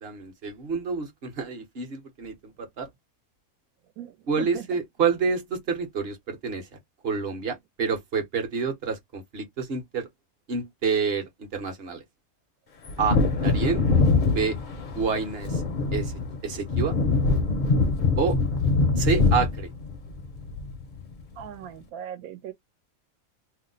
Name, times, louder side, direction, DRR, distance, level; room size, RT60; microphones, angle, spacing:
voice 1, 0.0-2.9 4.3-6.8 7.0-10.1 10.5-12.0 13.0-13.9 14.3-14.6 14.9-15.6 15.9-16.1 16.4-17.0 18.2-18.4 18.9-19.7, right 5 dB, 50° right, 0.9 m, -28 dB
voice 2, 4.0-4.6 21.4-22.5, right 9 dB, 80° right, 1.2 m, -39 dB
Wind / Thunder, 12.8-21.1 21.4-21.5, left 3 dB, 50° left, 0.6 m, -24 dB
2.7 x 2.0 x 3.8 m
omnidirectional pair, 1.5 m